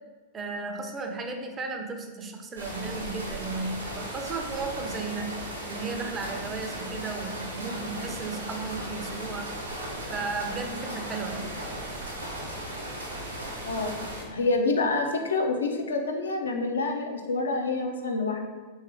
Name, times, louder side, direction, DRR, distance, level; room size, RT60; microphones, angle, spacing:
voice 1, 0.3-9.5 10.1-11.5, right 3 dB, 20° right, 4 dB, 0.4 m, -34 dB
sound 1, 2.6-14.2, right 1 dB, 80° right, 0.7 m, -36 dB
voice 2, 14.3-18.4, left 3 dB, 70° left, 4 dB, 0.4 m, -27 dB
3.5 x 2.7 x 3.2 m, 1.4 s
figure-of-eight pair, 90°, 0 cm